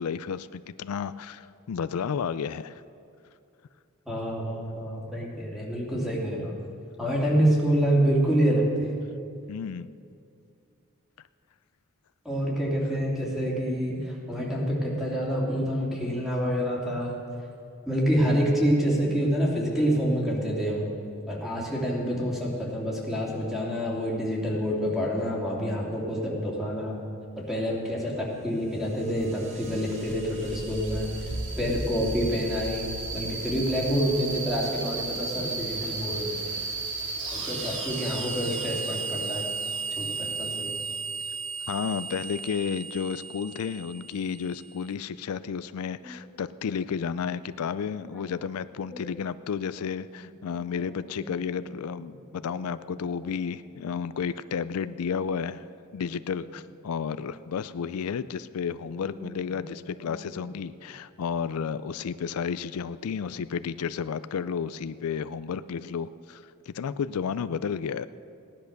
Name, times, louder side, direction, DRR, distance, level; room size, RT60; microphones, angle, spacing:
voice 1, 0.0-2.8 9.5-9.9 41.7-55.7 55.9-68.1, left 6 dB, 85° left, 15 dB, 0.4 m, -32 dB
voice 2, 4.1-6.6 7.0-8.9 12.2-17.2 17.9-20.9 21.3-27.0 27.4-36.6 37.3-39.5 39.9-40.7 46.0-46.2 48.1-48.2 48.9-49.0 50.1-50.2 50.7-51.7 52.5-52.7 56.4-56.5 58.8-60.5, equal, ahead, -4 dB, 2.7 m, -28 dB
sound 1, 28.4-44.7, right 3 dB, 55° right, 2.5 m, -35 dB
16.5 x 10.5 x 6.6 m, 2.5 s
head